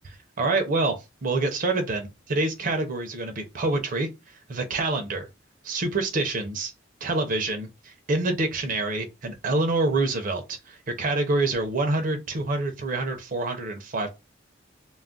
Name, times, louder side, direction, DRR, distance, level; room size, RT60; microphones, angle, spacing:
voice 1, 0.4-5.3 5.6-6.7 7.0-14.1, right 2 dB, 45° right, 0.5 m, -27 dB
2.3 x 2.0 x 3.7 m
head